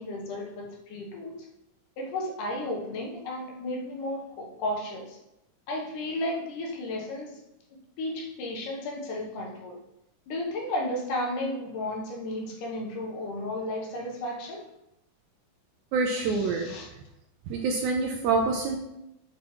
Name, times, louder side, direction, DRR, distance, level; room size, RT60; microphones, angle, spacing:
voice 1, 0.0-1.5 2.0-5.2 5.7-7.4 8.0-9.8 10.3-14.6 16.1-16.9, left 1 dB, 75° left, -1 dB, 2.4 m, -33 dB
voice 2, 15.9-16.7 17.5-18.8, right 4 dB, 80° right, 2 dB, 1.8 m, -26 dB
7.4 x 4.3 x 3.0 m, 0.85 s
omnidirectional pair, 3.9 m